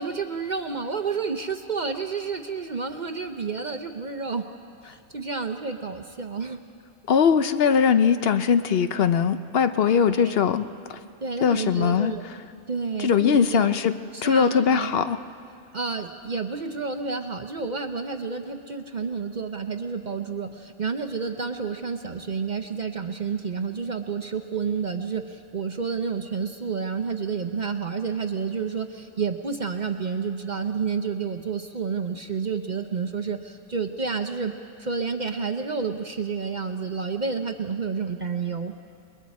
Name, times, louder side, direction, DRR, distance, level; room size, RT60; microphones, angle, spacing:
voice 1, 0.0-4.5 4.8-6.6 10.0-10.4 11.2-12.2 12.7-13.7 14.1-14.9 15.7-34.5 34.8-38.7, right 5 dB, 40° right, 6 dB, 0.8 m, -30 dB
voice 2, 7.1-11.0 11.4-12.1 13.0-13.9 14.2-15.2, left 7 dB, 55° left, 10 dB, 0.8 m, -21 dB
29.0 x 21.5 x 4.2 m, 2.6 s
omnidirectional pair, 1.3 m